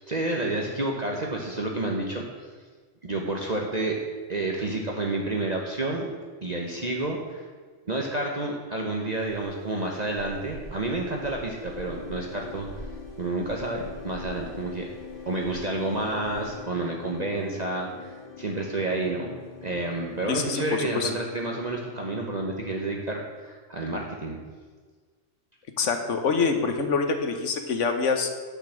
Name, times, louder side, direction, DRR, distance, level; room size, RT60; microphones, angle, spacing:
voice 1, 0.1-2.5 3.0-4.0 4.3-6.1 6.4-7.4 7.9-12.7 13.2-14.9 15.3-19.3 19.6-24.4, right 2 dB, 35° right, 0 dB, 1.1 m, -30 dB
sound 1, 9.1-16.6, right 2 dB, 85° right, 1.8 m, -46 dB
sound 2, 11.6-23.5, left 6 dB, 55° left, 3.3 m, -44 dB
voice 2, 20.3-21.1 25.8-28.3, left 4 dB, 90° left, 6 dB, 1.4 m, -25 dB
10.5 x 5.9 x 7.6 m, 1.5 s
omnidirectional pair, 1.2 m